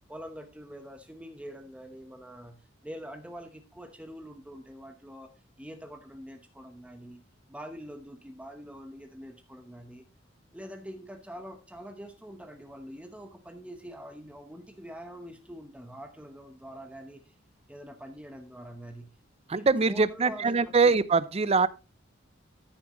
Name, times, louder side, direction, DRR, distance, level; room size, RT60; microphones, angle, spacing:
voice 1, 0.1-5.3 5.6-7.2 7.5-10.0 10.5-17.3 17.7-19.1 19.5-20.6 20.8-20.9, equal, 5° right, 0.9 m, -44 dB
voice 2, 19.5-21.7, right 4 dB, 30° right, 0.5 m, -23 dB
13.0 x 7.1 x 3.0 m
head